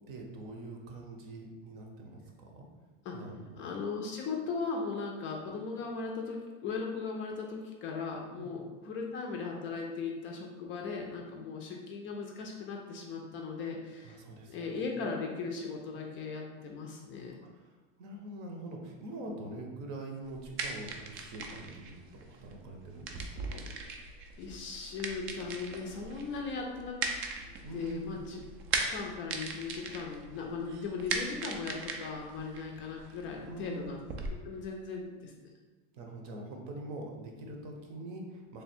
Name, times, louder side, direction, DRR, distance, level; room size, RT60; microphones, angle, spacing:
voice 1, 0.1-2.7 3.1-3.6 8.4-8.5 14.0-14.9 17.5-17.7 18.0-23.6 27.6-28.2 33.5-33.9 35.9-38.6, right 2 dB, 55° right, 2 dB, 0.8 m, -44 dB
voice 2, 3.6-14.2 14.5-17.4 23.9-24.0 24.4-27.1 27.7-28.4 28.9-34.0 34.4-35.5, left 4 dB, 35° left, 0 dB, 0.4 m, -38 dB
sound 1, 20.2-34.3, right 3 dB, 35° right, 0.4 m, -39 dB
3.3 x 2.3 x 4.3 m, 1.3 s
supercardioid pair, 135°, 37 cm